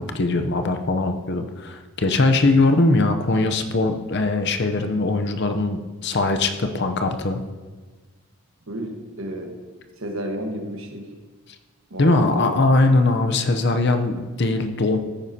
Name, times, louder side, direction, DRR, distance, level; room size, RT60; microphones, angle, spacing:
voice 1, 0.0-7.4 12.0-15.0, left 2 dB, 50° left, 7 dB, 0.7 m, -21 dB
voice 2, 8.7-9.6 10.0-11.1 11.9-12.5, right 1 dB, 65° right, 3 dB, 1.4 m, -32 dB
14.0 x 9.6 x 2.8 m, 1.4 s
head